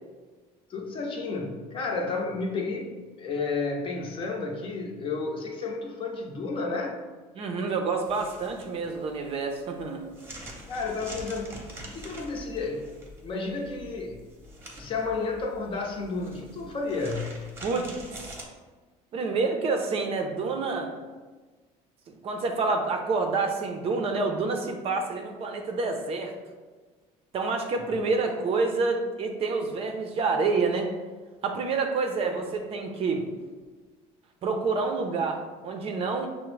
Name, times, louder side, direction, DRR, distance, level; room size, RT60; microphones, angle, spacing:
voice 1, 0.7-7.0 10.7-11.6 11.8-12.9 13.2-14.2 14.8-17.4, left 3 dB, 40° left, 1 dB, 0.7 m, -31 dB
voice 2, 7.4-10.1 17.6-18.3 19.1-21.0 22.1-26.3 27.3-30.9 31.4-33.3 34.4-36.3, right 4 dB, 45° right, 4 dB, 0.5 m, -28 dB
sound 1, 8.0-18.4, right 1 dB, 15° right, 0.8 m, -45 dB
5.8 x 2.0 x 3.1 m, 1.4 s
cardioid pair, 120°, 14 cm